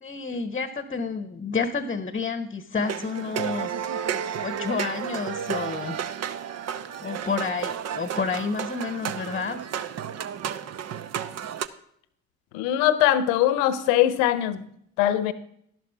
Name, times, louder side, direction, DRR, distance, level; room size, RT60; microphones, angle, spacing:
voice 1, 0.0-3.9 4.4-6.0 7.0-9.6, left 5 dB, 20° left, 12 dB, 1.0 m, -30 dB
sound 1, 2.8-11.7, right 8 dB, 45° right, 0.8 m, -32 dB
voice 2, 12.5-14.6 15.0-15.3, left 12 dB, 70° left, 15 dB, 1.0 m, -21 dB
12.0 x 12.0 x 3.5 m, 0.70 s
figure-of-eight pair, 50°, 37 cm